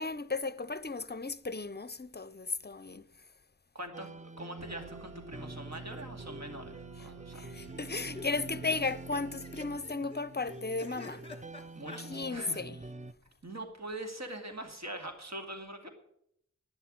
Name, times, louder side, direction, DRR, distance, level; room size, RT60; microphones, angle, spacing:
voice 1, 0.0-3.1 7.3-11.2 12.0-12.8, left 3 dB, 35° left, 0.6 m, -35 dB
voice 2, 3.7-7.4 11.7-12.6 13.4-15.9, right 1 dB, 60° right, 2.4 m, -43 dB
sound 1, 3.9-13.1, right 2 dB, 25° right, 0.5 m, -47 dB
sound 2, 4.6-9.8, right 5 dB, 80° right, 0.7 m, -49 dB
sound 3, 5.7-6.2 6.5-6.6 6.8-6.9 7.5-12.0, left 3 dB, 15° left, 1.8 m, -49 dB
11.5 x 10.0 x 8.7 m
wide cardioid pair, 40°, 31 cm